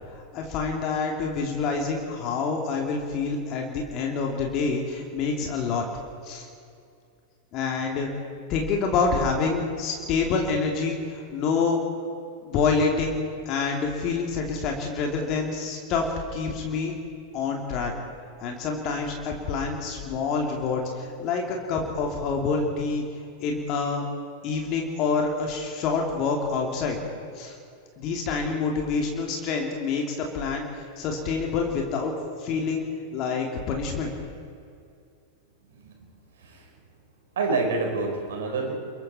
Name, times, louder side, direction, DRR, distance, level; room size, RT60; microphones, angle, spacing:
voice 1, 0.1-5.8 6.2-6.5 7.5-8.1 8.5-11.8 12.4-13.2 13.4-16.1 16.3-16.9 17.3-17.9 18.4-23.0 23.4-24.1 24.4-27.0 27.3-27.5 28.0-30.7 31.0-32.1 32.4-32.8 33.1-34.1, left 4 dB, 40° left, 0 dB, 3.0 m, -27 dB
voice 2, 37.4-38.7, right 3 dB, 60° right, 2 dB, 4.7 m, -27 dB
29.5 x 22.0 x 4.5 m, 2.4 s
figure-of-eight pair, 90°, 0 cm